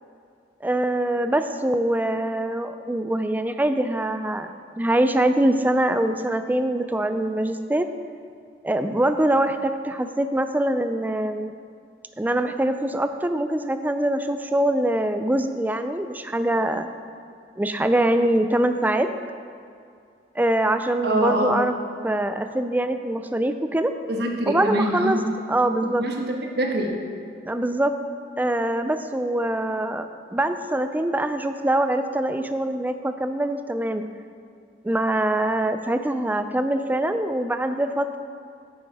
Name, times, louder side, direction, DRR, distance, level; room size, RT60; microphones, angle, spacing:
voice 1, 0.6-4.5 4.8-7.9 8.6-11.5 12.2-16.9 17.6-19.1 20.4-21.7 22.0-23.9 24.5-25.2 25.5-26.1 27.5-27.9 28.4-34.1 34.8-38.2, right 1 dB, 10° right, 9 dB, 0.3 m, -23 dB
voice 2, 21.0-21.6 24.1-25.2 26.0-26.9, right 1 dB, 65° right, 1 dB, 1.2 m, -24 dB
9.1 x 7.2 x 4.8 m, 2.3 s
head